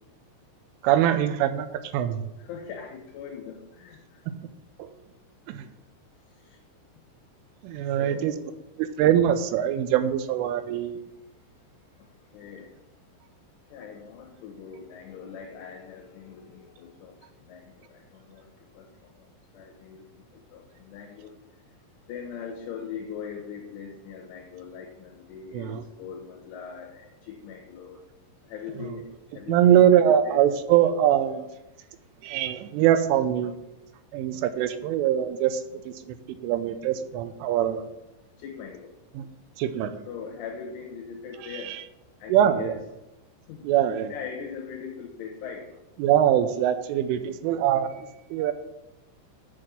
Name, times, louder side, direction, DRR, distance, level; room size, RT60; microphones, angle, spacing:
voice 1, 0.8-1.7 1.9-2.3 4.8-4.9 5.5-5.7 7.6-8.3 8.8-11.0 25.5-25.8 28.8-29.0 29.5-31.5 32.2-33.5 34.1-35.9 36.4-37.9 39.2-39.3 39.6-40.0 41.6-41.8 42.3-42.8 43.6-44.1 46.0-48.5, right 10 dB, 80° right, 9 dB, 3.0 m, -23 dB
voice 2, 2.4-4.0 6.4-6.6 8.0-8.5 12.3-12.7 13.7-17.1 17.5-17.7 18.1-18.9 19.5-20.0 20.5-21.3 22.1-28.0 28.5-29.1 29.3-30.4 38.4-38.9 40.1-41.8 42.2-42.8 43.5-43.6 44.1-45.7, left 6 dB, 75° left, -1 dB, 3.6 m, -40 dB
7.8 x 6.6 x 7.3 m, 0.92 s
omnidirectional pair, 6.0 m